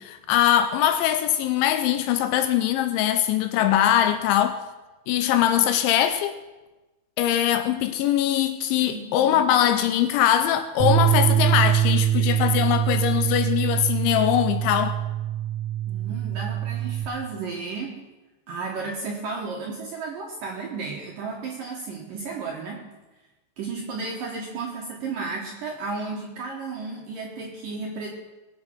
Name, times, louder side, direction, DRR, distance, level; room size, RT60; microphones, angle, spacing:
voice 1, 0.0-4.6 5.1-6.4 7.2-15.0, left 11 dB, 80° left, 2.8 m, -22 dB
voice 2, 8.8-9.5 15.9-18.0 18.5-22.9 23.6-28.1, right 4 dB, 65° right, 2.2 m, -33 dB
sound 1, 10.8-17.0, right 11 dB, 40° right, 2.1 m, -23 dB
21.5 x 7.7 x 6.0 m
omnidirectional pair, 5.7 m